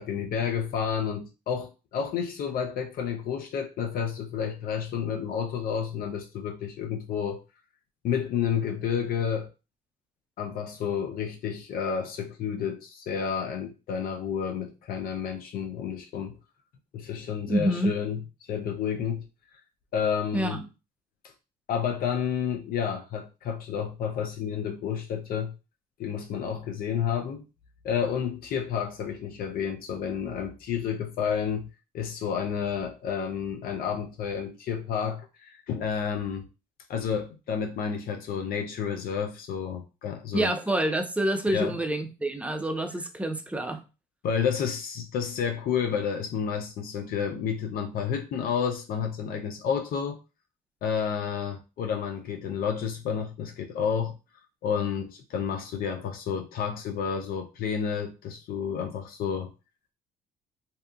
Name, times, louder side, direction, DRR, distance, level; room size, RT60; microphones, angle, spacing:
voice 1, 0.0-7.4 8.0-9.5 10.4-16.4 16.9-18.2 18.5-19.2 19.5-19.6 19.9-20.7 21.7-25.5 26.0-27.5 27.8-31.7 31.9-36.5 36.9-40.5 41.5-41.8 44.2-50.2 50.8-54.1 54.6-59.5, left 7 dB, 60° left, 0.5 m, -30 dB
voice 2, 17.5-17.9 20.3-20.6 40.3-43.8, right 1 dB, 10° right, 0.5 m, -27 dB
2.7 x 2.4 x 2.3 m
supercardioid pair, 70°, 17 cm